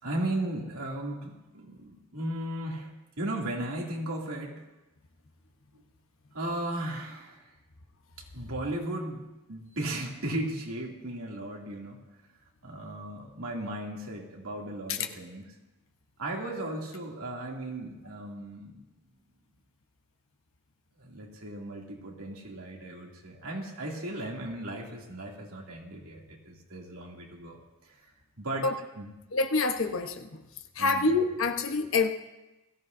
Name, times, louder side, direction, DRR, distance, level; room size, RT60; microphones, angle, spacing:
voice 1, 0.0-2.9 3.2-4.6 6.3-7.5 8.3-12.0 12.6-15.4 16.2-18.8 21.0-27.6 27.9-28.1 28.4-29.1 30.8-31.1, right 1 dB, 85° right, -2 dB, 2.6 m, -36 dB
voice 2, 29.3-30.4 30.8-32.1, left 3 dB, 65° left, 5 dB, 1.0 m, -26 dB
21.0 x 14.5 x 2.7 m, 1.0 s
head